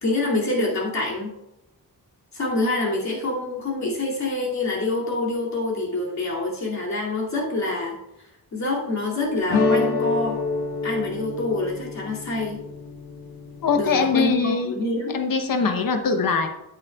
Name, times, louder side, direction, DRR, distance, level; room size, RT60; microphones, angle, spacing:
voice 1, 0.0-1.3 2.3-8.0 8.5-10.4 10.8-12.6 13.8-15.2, left 2 dB, 45° left, -3 dB, 2.6 m, -26 dB
sound 1, 9.5-14.4, left 4 dB, 85° left, 1.1 m, -27 dB
voice 2, 13.6-14.7 15.1-16.5, left 4 dB, 65° left, 6 dB, 1.0 m, -22 dB
9.6 x 8.2 x 2.4 m, 0.88 s
cardioid pair, 95°, 37 cm